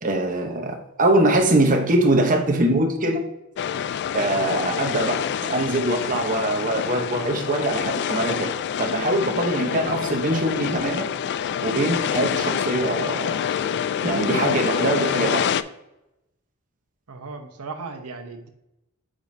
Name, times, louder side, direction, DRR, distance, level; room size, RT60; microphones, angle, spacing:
voice 1, 0.0-3.2 4.1-5.1 5.4-8.5 8.8-11.1 11.6-13.5 14.0-15.6, right 1 dB, 35° right, 2 dB, 1.0 m, -22 dB
sound 1, 3.6-15.6, left 8 dB, 50° left, 0.3 m, -27 dB
voice 2, 17.1-18.5, right 4 dB, 90° right, 6 dB, 0.9 m, -37 dB
8.3 x 5.1 x 2.7 m, 0.90 s
head